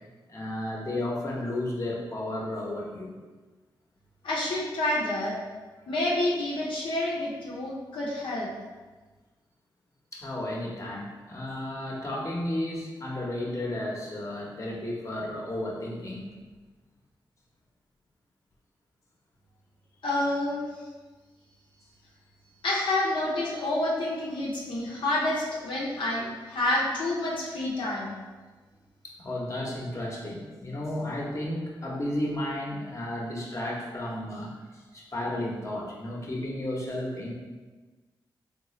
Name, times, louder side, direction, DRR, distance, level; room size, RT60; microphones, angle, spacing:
voice 1, 0.3-3.1 10.1-16.3 29.0-37.3, left 1 dB, 35° left, -3 dB, 0.9 m, -33 dB
voice 2, 4.2-5.4 5.9-8.5 20.0-20.7 22.6-28.1, left 1 dB, 75° left, -5 dB, 0.6 m, -28 dB
3.7 x 2.3 x 3.0 m, 1.3 s
cardioid pair, 60°, 9 cm